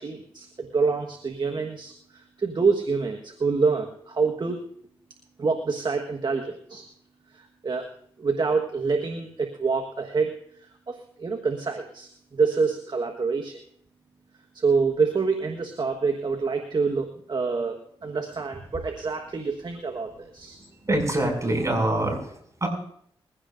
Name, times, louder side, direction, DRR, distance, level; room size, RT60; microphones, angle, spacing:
voice 1, 0.0-4.6 5.4-6.9 7.3-7.9 8.2-13.6 14.5-17.8 18.0-20.6, right 4 dB, 50° right, 4 dB, 1.4 m, -27 dB
voice 2, 20.6-22.7, right 1 dB, 35° right, 2 dB, 6.4 m, -25 dB
21.5 x 16.0 x 2.6 m, 0.64 s
cardioid pair, 50°, 10 cm